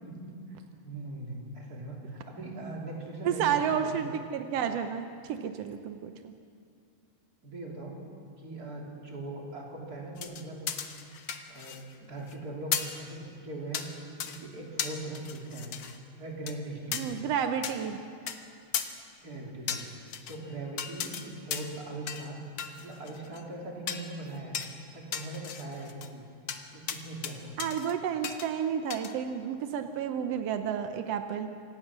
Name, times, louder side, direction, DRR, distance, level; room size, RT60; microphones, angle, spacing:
voice 1, 0.0-4.2 7.4-8.0 8.4-10.7 11.5-13.9 14.2-15.7 16.2-17.2 19.2-19.8 20.3-22.4 22.8-24.6 24.9-26.2 26.7-27.6, right 2 dB, 25° right, -2 dB, 3.4 m, -40 dB
voice 2, 3.2-6.3 16.9-18.0 27.6-31.5, right 8 dB, 80° right, 7 dB, 1.4 m, -31 dB
sound 1, 10.2-11.9 12.2-12.3 12.7-13.0 13.7-13.9 14.2-14.4 14.8-16.0 16.5-16.6 16.9-17.0 17.6-17.7 18.3-18.4 18.7-18.9 19.7-20.4 20.8-21.2 21.5-21.8 22.1-22.3 22.6-23.4 23.9-24.1 24.5-24.7 25.1-26.1 26.5-26.6 26.9-27.3 27.6-27.9 28.2-28.5 28.9-29.1, left 8 dB, 75° left, 1.2 m, -35 dB
26.5 x 17.0 x 6.1 m, 2.3 s
omnidirectional pair, 3.9 m